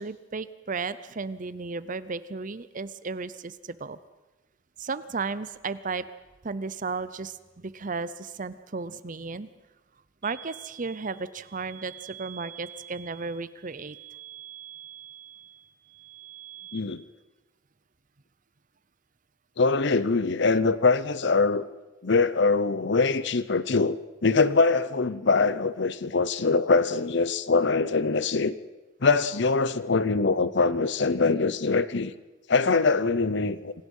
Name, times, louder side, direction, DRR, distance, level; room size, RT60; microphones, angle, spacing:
voice 1, 0.0-4.0 4.8-6.1 6.4-9.5 10.2-14.0, right 4 dB, 40° right, 15 dB, 0.7 m, -34 dB
sound 1, 10.2-16.8, right 12 dB, 20° right, 3.9 m, -46 dB
voice 2, 16.7-17.0 19.6-21.6 22.0-28.5 29.0-32.1 32.5-33.7, left 4 dB, 60° left, 16 dB, 0.8 m, -23 dB
26.5 x 18.0 x 5.5 m, 1.1 s
head